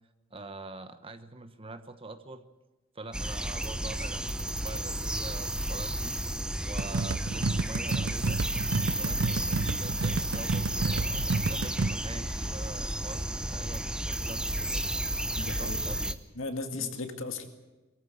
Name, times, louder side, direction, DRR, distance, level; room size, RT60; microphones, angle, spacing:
voice 1, 0.3-2.4 2.9-6.2 6.6-8.4 9.0-14.9 15.6-16.2 16.7-16.9, right 2 dB, 25° right, 10 dB, 1.1 m, -44 dB
sound 1, 3.1-16.1, right 1 dB, 5° right, 0.8 m, -32 dB
sound 2, 6.6-15.8, left 2 dB, 50° left, 2.3 m, -58 dB
sound 3, 6.8-11.9, right 3 dB, 70° right, 0.7 m, -31 dB
voice 2, 15.4-15.8 16.4-17.4, left 3 dB, 70° left, 6 dB, 2.2 m, -36 dB
22.5 x 14.5 x 8.5 m, 1.2 s
head